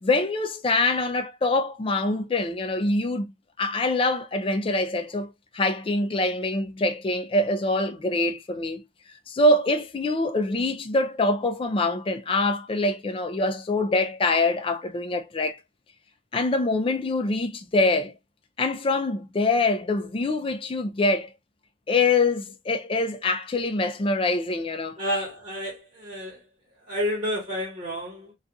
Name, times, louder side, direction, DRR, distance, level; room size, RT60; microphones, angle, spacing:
voice 1, 0.0-3.3 3.6-8.8 9.3-15.6 16.3-18.1 18.6-21.3 21.9-25.0, left 2 dB, 30° left, 0.4 m, -24 dB
voice 2, 25.0-26.4 26.9-28.3, equal, 40° right, 1.1 m, -30 dB
2.4 x 2.3 x 2.5 m
head